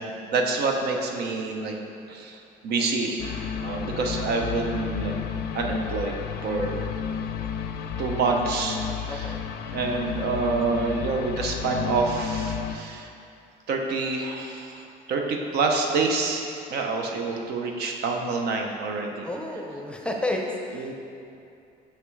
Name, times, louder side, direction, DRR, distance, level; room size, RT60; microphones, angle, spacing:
voice 1, 0.0-1.8 2.1-5.1 5.5-6.9 8.0-9.4 9.7-13.1 13.7-16.4 16.7-19.3 20.7-20.9, right 3 dB, 70° right, 2 dB, 0.8 m, -27 dB
sound 1, 3.2-12.7, left 8 dB, 70° left, 0.4 m, -32 dB
voice 2, 9.1-9.4 19.2-20.9, left 1 dB, 5° left, 0 dB, 0.6 m, -31 dB
6.7 x 5.8 x 3.2 m, 2.6 s
cardioid pair, 110°, 17 cm